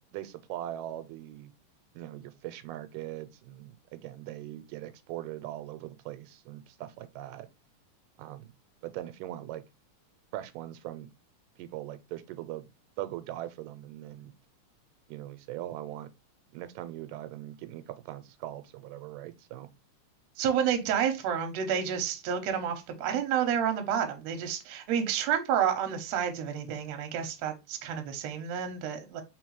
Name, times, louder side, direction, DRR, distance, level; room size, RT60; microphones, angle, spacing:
voice 1, 0.0-1.5 2.0-7.5 8.2-8.5 8.8-9.6 10.3-11.1 11.6-12.7 13.0-14.3 15.1-16.1 16.5-19.7, right 13 dB, 90° right, 2.2 m, -40 dB
voice 2, 20.4-29.2, right 8 dB, 70° right, 1.7 m, -30 dB
4.4 x 3.8 x 3.1 m
omnidirectional pair, 3.7 m